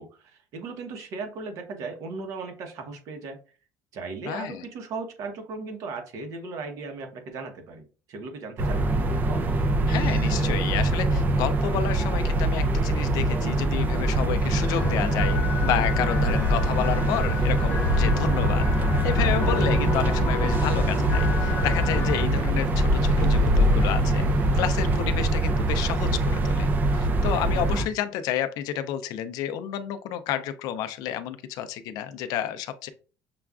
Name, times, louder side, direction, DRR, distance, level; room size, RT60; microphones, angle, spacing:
voice 1, 0.0-3.4 3.9-8.9, right 4 dB, 50° right, 5 dB, 0.9 m, -37 dB
voice 2, 4.3-4.6 9.9-15.4 15.6-18.7 19.0-24.2 24.5-26.7 26.9-32.9, left 10 dB, 60° left, 11 dB, 0.4 m, -30 dB
sound 1, 8.6-27.9, right 2 dB, 25° right, 0.4 m, -24 dB
sound 2, 14.7-22.3, left 3 dB, 35° left, 0.8 m, -30 dB
sound 3, 16.1-25.0, left 1 dB, 75° right, 1.4 m, -28 dB
6.6 x 2.3 x 2.3 m, 0.37 s
cardioid pair, 175°, 7 cm